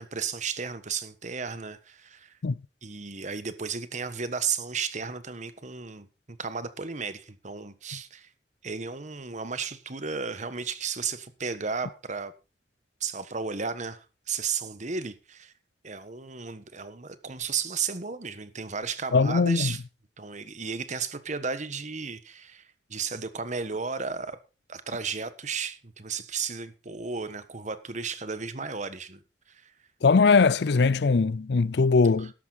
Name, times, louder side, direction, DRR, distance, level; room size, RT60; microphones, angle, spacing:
voice 1, 0.0-2.4 2.8-8.3 8.6-12.3 13.0-15.5 15.8-19.8 20.2-24.4 24.7-29.2 29.5-29.7 32.2-32.3, right 5 dB, 45° right, 1.3 m, -34 dB
voice 2, 19.1-19.7 30.0-32.3, left 4 dB, 65° left, 0.5 m, -21 dB
12.5 x 11.0 x 4.1 m
head